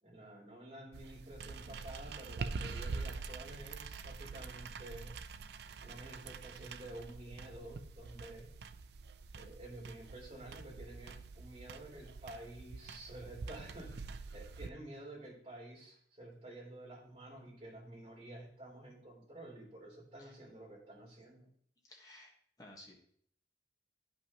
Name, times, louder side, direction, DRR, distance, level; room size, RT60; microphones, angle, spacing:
voice 1, 0.0-5.1 5.8-8.5 9.3-21.5, right 1 dB, 35° right, -3 dB, 3.4 m, -50 dB
sound 1, 0.9-14.7, right 4 dB, 60° right, 0.4 m, -45 dB
voice 2, 21.8-22.9, left 1 dB, 20° left, -1 dB, 1.5 m, -56 dB
10.5 x 5.6 x 3.0 m, 0.63 s
head